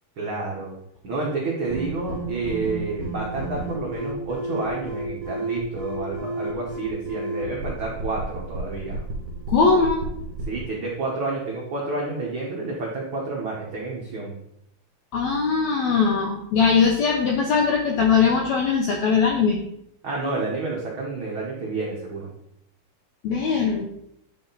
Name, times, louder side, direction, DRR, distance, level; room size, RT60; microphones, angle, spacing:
voice 1, 0.2-0.7 1.0-9.0 10.4-14.3 20.0-22.3, right 3 dB, 70° right, -4 dB, 1.1 m, -29 dB
sound 1, 1.7-10.7, right 2 dB, 50° right, 2.5 m, -32 dB
voice 2, 9.5-10.0 15.1-19.6 23.2-23.9, left 5 dB, 80° left, 1 dB, 1.6 m, -20 dB
9.9 x 4.3 x 3.9 m, 0.77 s
omnidirectional pair, 4.2 m